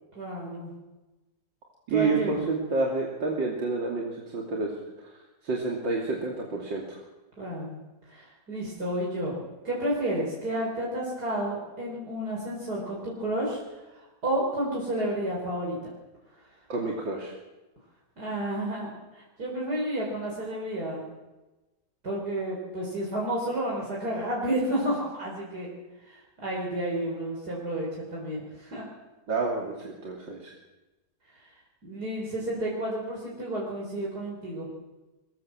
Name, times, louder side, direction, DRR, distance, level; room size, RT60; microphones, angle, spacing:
voice 1, 0.2-0.7 1.9-2.3 7.4-7.8 8.1-9.3 9.6-15.9 18.2-21.0 22.0-25.7 26.0-28.9 31.4-31.5 31.8-34.7, right 1 dB, 60° right, -4 dB, 5.4 m, -31 dB
voice 2, 1.9-4.7 5.0-5.1 5.4-7.0 16.7-17.3 29.3-30.5, right 3 dB, 90° right, -1 dB, 3.5 m, -29 dB
23.0 x 20.0 x 7.6 m, 1.1 s
omnidirectional pair, 1.9 m